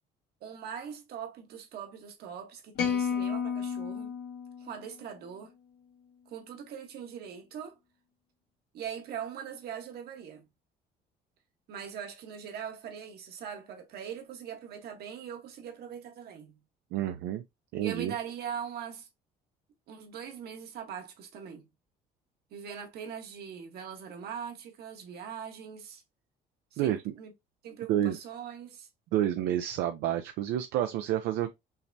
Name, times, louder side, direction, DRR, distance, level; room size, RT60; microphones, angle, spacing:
voice 1, 0.4-4.1 4.6-5.5 6.3-7.8 8.7-10.5 11.7-16.6 17.8-19.1 19.9-21.7 22.5-26.0 26.7-27.3 27.6-28.9, right 8 dB, 70° right, 1.2 m, -41 dB
sound 1, 2.8-5.1, left 7 dB, 80° left, 1.3 m, -32 dB
voice 2, 16.9-17.4 17.7-18.1 26.8-27.1 27.9-28.2 29.1-31.5, right 11 dB, 85° right, 0.5 m, -29 dB
5.6 x 2.2 x 2.6 m
cardioid pair, 110°, 17 cm